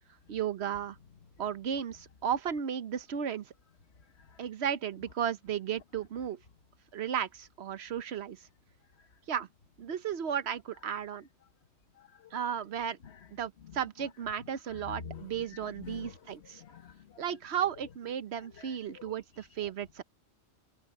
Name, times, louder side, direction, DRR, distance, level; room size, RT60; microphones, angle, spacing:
voice 1, 0.3-1.0 1.4-3.5 4.4-6.4 6.9-8.5 9.3-9.5 9.8-11.3 12.3-13.0 13.3-16.6 17.2-20.0, right 8 dB, 60° right, 1.1 m, -34 dB
voice 2, 12.0-12.3 14.7-16.2 16.6-17.2 18.3-19.5, left 7 dB, 60° left, 1.5 m, -48 dB
omnidirectional pair, 1.3 m